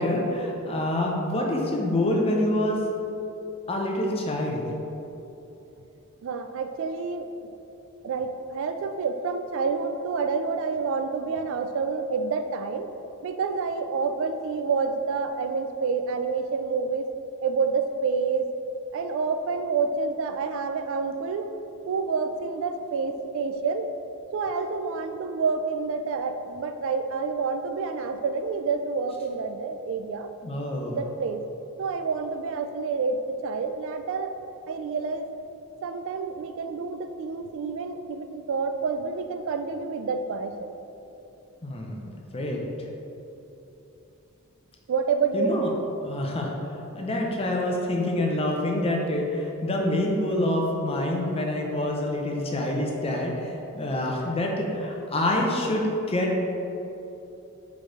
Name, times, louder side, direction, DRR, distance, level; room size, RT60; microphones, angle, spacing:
voice 1, 0.0-2.8 3.7-4.6 30.4-30.9 41.6-42.6 45.3-45.7 46.0-46.5 46.9-56.4, left 1 dB, 25° left, 0 dB, 0.7 m, -26 dB
voice 2, 6.2-7.3 8.0-12.9 13.2-17.1 17.4-18.5 18.9-21.5 21.9-23.9 24.3-30.3 30.9-31.4 31.8-34.3 34.7-35.3 35.8-40.7 44.9-45.6, right 4 dB, 60° right, 8 dB, 0.3 m, -28 dB
4.7 x 4.5 x 4.7 m, 2.9 s
head